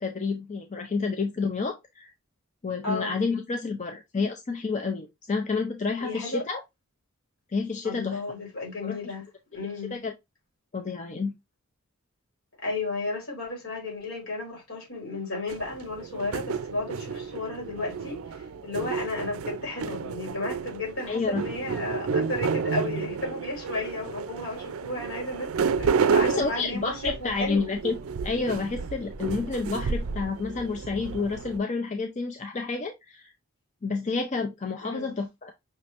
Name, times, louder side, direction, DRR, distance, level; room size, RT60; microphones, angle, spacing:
voice 1, 0.0-2.1 2.6-6.6 7.5-8.2 8.8-9.0 9.9-10.1 10.7-11.3 21.1-21.4 26.3-27.9 28.2-33.3 33.8-35.5, left 4 dB, 35° left, 0.5 m, -29 dB
voice 2, 2.8-3.2 6.0-6.4 7.8-9.3 9.5-10.0 12.6-27.7 34.8-35.1, left 2 dB, 70° left, 3.7 m, -33 dB
sound 1, 15.5-31.6, right 5 dB, 75° right, 0.4 m, -31 dB
5.9 x 3.2 x 2.8 m
head